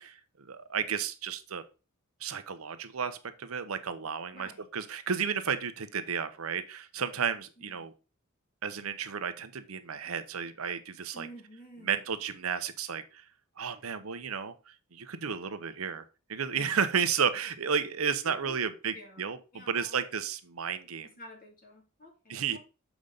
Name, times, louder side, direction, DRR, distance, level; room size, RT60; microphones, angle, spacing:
voice 1, 0.0-1.6 2.2-7.9 8.6-11.3 11.8-13.2 13.6-19.4 19.7-21.1 22.3-22.6, right 6 dB, 85° right, 11 dB, 0.8 m, -33 dB
voice 2, 4.3-4.7 7.6-7.9 11.1-12.0 18.2-20.1 21.2-22.6, equal, 40° left, 1 dB, 2.4 m, -50 dB
7.1 x 5.1 x 3.9 m, 0.31 s
head